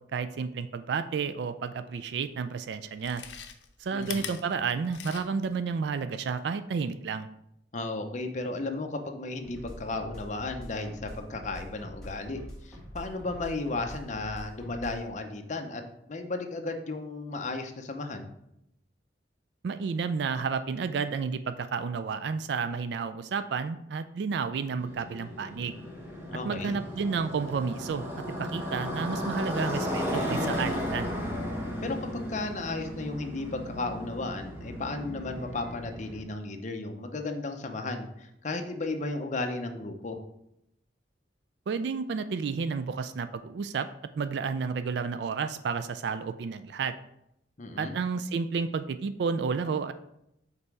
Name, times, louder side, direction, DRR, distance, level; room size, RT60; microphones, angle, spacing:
voice 1, 0.1-3.2 3.8-7.3 19.6-25.8 26.4-28.0 28.4-31.1 41.7-43.9 44.2-46.9 47.8-49.9, right 5 dB, 70° right, 11 dB, 0.3 m, -31 dB
Chewing mastication, 2.1-2.2 2.9-5.5 5.9-6.0, left 8 dB, 85° left, 0.6 m, -41 dB
voice 2, 3.9-4.3 7.7-15.8 16.1-18.3 26.3-26.8 31.8-40.2 47.6-47.9, left 2 dB, 45° left, 5 dB, 0.7 m, -34 dB
sound 1, 9.4-15.1, equal, 5° left, 1.6 m, -45 dB
Motorcycle, 24.8-36.2, equal, 15° right, 1.1 m, -35 dB
5.4 x 4.0 x 4.6 m, 0.79 s
head